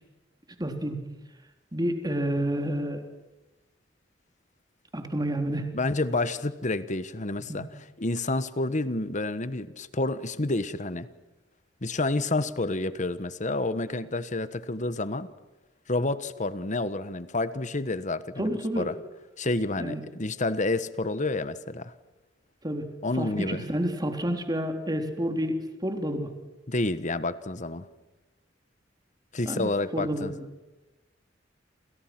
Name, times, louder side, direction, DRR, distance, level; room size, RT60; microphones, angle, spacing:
voice 1, 0.6-1.0 1.7-3.0 4.9-5.7 7.5-7.6 18.4-18.9 19.8-20.0 22.6-22.9 23.1-26.3 29.5-30.5, equal, 20° right, 5 dB, 3.6 m, -29 dB
voice 2, 5.7-7.7 8.0-11.1 11.8-15.3 15.9-19.0 19.4-21.9 23.0-23.6 26.7-27.9 29.3-30.3, left 2 dB, 40° left, 13 dB, 1.4 m, -29 dB
29.5 x 28.0 x 6.1 m, 1.1 s
head